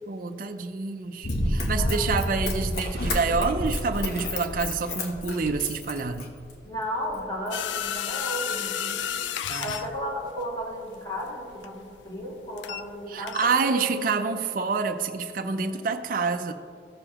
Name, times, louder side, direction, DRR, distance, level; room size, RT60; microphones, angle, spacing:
voice 1, 0.1-6.3 9.5-9.8 13.1-16.5, right 4 dB, 50° right, 6 dB, 0.5 m, -27 dB
Run, 1.2-6.5 7.1-7.2, left 1 dB, 60° left, 1.0 m, -29 dB
voice 2, 1.8-2.5 6.6-9.1 9.6-14.0, equal, 25° left, -5 dB, 1.9 m, -34 dB
sound 1, 7.5-13.0 13.3-13.5, left 10 dB, 80° left, 0.3 m, -32 dB
15.0 x 6.8 x 2.9 m, 2.2 s
head